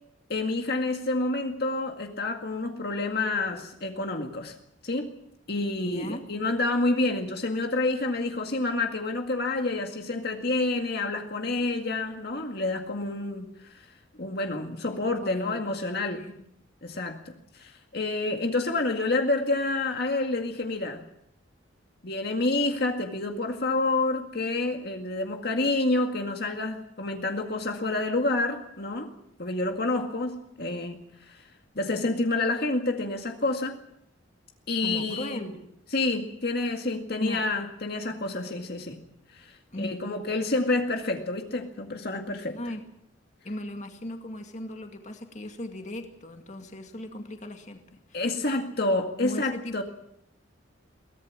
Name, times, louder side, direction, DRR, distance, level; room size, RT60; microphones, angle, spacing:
voice 1, 0.3-4.5 4.8-5.1 5.5-13.8 14.2-16.2 16.8-21.0 22.0-29.1 29.4-31.0 31.3-31.4 31.8-33.8 34.7-35.4 35.9-39.0 39.3-42.6 48.1-49.8, left 2 dB, 55° left, 3 dB, 2.0 m, -28 dB
voice 2, 5.8-6.2 15.2-15.6 16.1-16.4 34.8-35.6 37.2-37.4 39.7-40.1 42.5-42.8 43.4-48.2 49.2-49.8, left 1 dB, 35° left, 5 dB, 2.2 m, -37 dB
23.0 x 18.5 x 7.5 m, 0.74 s
head